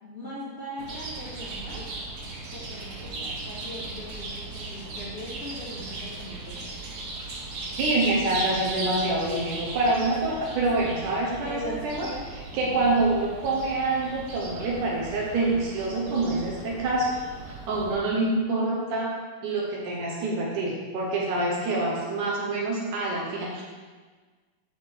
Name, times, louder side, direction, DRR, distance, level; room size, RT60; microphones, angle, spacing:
voice 1, 0.0-1.9 2.5-6.7 11.4-12.3 12.5-13.0, equal, 20° left, -8 dB, 2.2 m, -40 dB
Chirp tweet, 0.8-17.9, right 2 dB, 85° right, 3.9 m, -37 dB
voice 2, 7.8-12.1 12.5-17.1 17.5-19.1 19.4-23.6, right 2 dB, 65° right, -3 dB, 2.6 m, -26 dB
11.0 x 4.5 x 4.8 m, 1.4 s
omnidirectional pair, 4.0 m